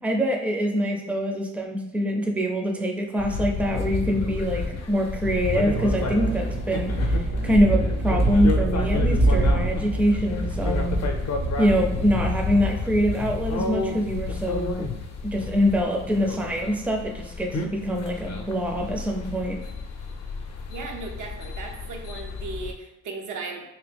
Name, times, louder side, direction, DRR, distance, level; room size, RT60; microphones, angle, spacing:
voice 1, 0.0-11.0 11.6-14.8 15.2-19.6, equal, 5° right, 2 dB, 0.5 m, -24 dB
sound 1, 3.2-22.7, left 4 dB, 55° left, 0.6 m, -31 dB
sound 2, 5.6-12.5, right 2 dB, 50° right, 0.8 m, -25 dB
voice 2, 20.7-23.7, right 3 dB, 80° right, 1 dB, 0.7 m, -36 dB
3.2 x 3.0 x 3.4 m, 0.88 s
cardioid pair, 90°, 30 cm